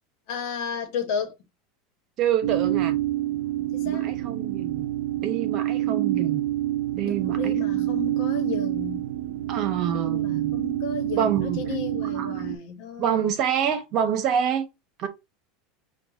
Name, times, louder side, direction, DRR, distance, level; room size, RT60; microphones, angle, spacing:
voice 1, 0.3-1.3 3.7-4.1 7.0-9.1 9.9-13.3, left 6 dB, 65° left, 1.2 m, -33 dB
voice 2, 2.2-3.0 3.8-4.8 5.2-6.4 6.9-7.9 9.5-10.5 11.2-11.6 12.1-12.5 13.0-14.7 15.0-15.1, right 9 dB, 50° right, 0.9 m, -26 dB
sound 1, 2.4-12.5, right 14 dB, 75° right, 0.5 m, -27 dB
4.7 x 2.4 x 3.5 m
supercardioid pair, 120°, 0 cm